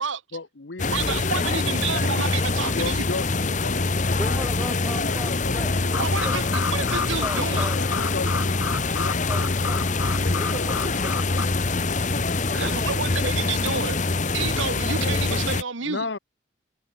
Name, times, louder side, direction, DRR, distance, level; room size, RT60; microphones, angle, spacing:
voice 1, 0.3-2.2 2.7-4.4 5.0-6.1 7.7-9.7 10.2-11.1 15.8-16.2, left 3 dB, 60° left, 1.0 m, -35 dB
sound 1, 0.8-15.6, left 3 dB, 40° left, 1.1 m, -24 dB
voice 2, 0.9-3.0 6.0-7.7 12.5-14.0 14.3-16.1, right 6 dB, 75° right, 1.4 m, -29 dB
voice 3, 4.2-6.3 7.2-7.8 9.3-9.8 10.4-11.5 12.4-13.0, equal, ahead, 1.2 m, -38 dB
sound 2, 5.9-11.4, left 5 dB, 80° left, 3.3 m, -32 dB
head